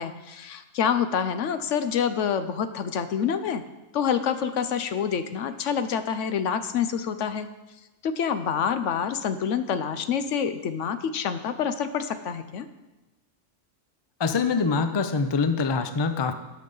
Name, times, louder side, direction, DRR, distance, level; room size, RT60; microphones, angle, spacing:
voice 1, 0.0-3.6 3.9-7.5 8.0-12.7, left 7 dB, 75° left, 11 dB, 1.0 m, -27 dB
voice 2, 14.2-16.3, left 4 dB, 35° left, 9 dB, 0.4 m, -24 dB
11.5 x 6.4 x 5.4 m, 1.1 s
omnidirectional pair, 1.3 m